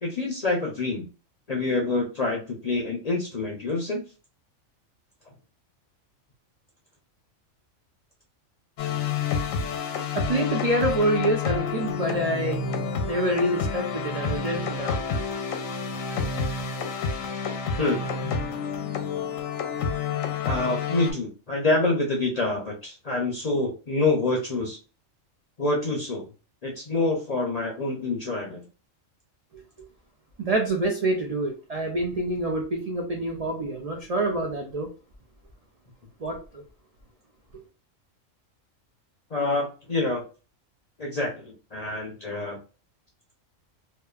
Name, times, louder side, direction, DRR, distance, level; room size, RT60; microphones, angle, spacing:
voice 1, 0.0-1.1 1.5-4.0 17.8-18.1 20.4-24.8 25.6-26.2 26.6-28.6 39.3-40.2 41.0-42.6, left 2 dB, 55° left, -1 dB, 0.4 m, -26 dB
sound 1, 8.8-21.1, left 5 dB, 85° left, 1.0 m, -29 dB
voice 2, 10.1-12.6 13.1-15.0 30.4-34.9 36.2-36.6, right 1 dB, 80° right, 1 dB, 0.3 m, -26 dB
2.9 x 2.2 x 2.3 m, 0.34 s
omnidirectional pair, 1.4 m